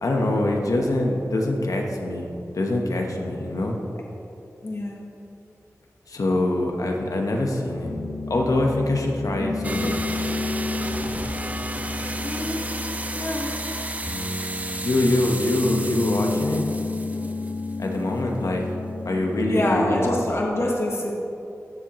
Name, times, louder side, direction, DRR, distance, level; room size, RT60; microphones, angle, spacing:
voice 1, 0.0-3.8 6.1-7.9 8.3-10.0 14.8-16.6 17.8-18.6 19.0-20.2, left 1 dB, 85° left, 1 dB, 1.1 m, -24 dB
voice 2, 4.6-5.1 12.2-12.6 13.1-13.5 19.5-21.1, left 1 dB, 50° left, -2 dB, 1.3 m, -25 dB
Piano, 7.8-20.3, left 3 dB, 65° left, 1.9 m, -31 dB
sound 1, 9.6-18.0, right 2 dB, 25° right, 0.5 m, -33 dB
14.0 x 7.4 x 3.1 m, 2.8 s
wide cardioid pair, 75°, 6 cm